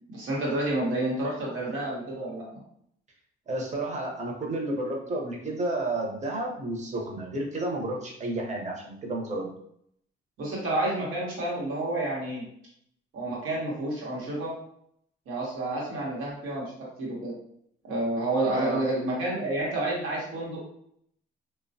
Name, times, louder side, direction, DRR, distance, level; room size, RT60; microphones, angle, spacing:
voice 1, 0.1-2.6 10.4-12.4 13.1-14.5 15.3-16.7 17.0-17.3 17.8-20.6, right 2 dB, 90° right, -4 dB, 1.0 m, -29 dB
voice 2, 3.5-9.5 18.5-18.8, right 2 dB, 35° right, -1 dB, 0.8 m, -31 dB
3.1 x 2.1 x 2.7 m, 0.69 s
cardioid pair, 90°, 20 cm